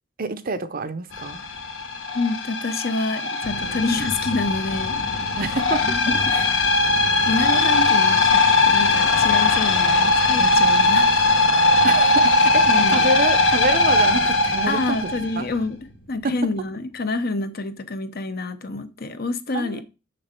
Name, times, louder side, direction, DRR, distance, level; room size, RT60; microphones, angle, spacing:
voice 1, 0.2-1.4 5.4-5.9 6.3-6.4 11.8-15.5 16.2-16.4 19.5-19.8, right 3 dB, 50° right, 0.7 m, -27 dB
sound 1, 1.1-15.7, left 2 dB, 75° left, 1.3 m, -19 dB
voice 2, 2.1-5.0 5.9-6.3 7.3-11.4 12.7-13.0 14.7-15.8 16.1-19.8, left 3 dB, 50° left, 0.9 m, -27 dB
6.7 x 6.4 x 4.4 m
head